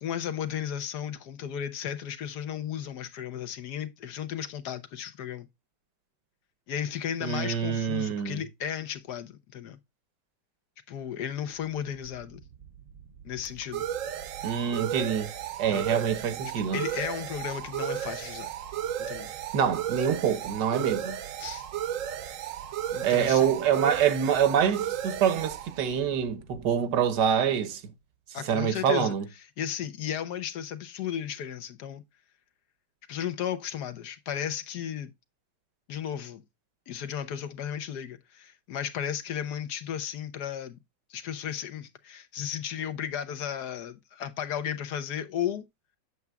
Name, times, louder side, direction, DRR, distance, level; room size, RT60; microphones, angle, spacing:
voice 1, 0.0-5.5 6.7-9.8 10.9-12.4 13.2-13.9 15.7-15.9 16.6-18.5 19.0-19.3 21.4-21.7 22.9-23.6 28.3-29.1 29.6-32.0 33.1-35.1 35.9-36.4 36.9-40.8 41.1-45.7, left 9 dB, 75° left, 1.5 m, -34 dB
voice 2, 7.2-8.4 14.4-15.3 15.6-16.8 19.5-21.2 23.0-27.8 28.5-29.2, right 8 dB, 85° right, 1.5 m, -26 dB
sound 1, 12.0-27.2, right 10 dB, 65° right, 0.9 m, -35 dB
7.9 x 7.1 x 2.3 m
omnidirectional pair, 1.8 m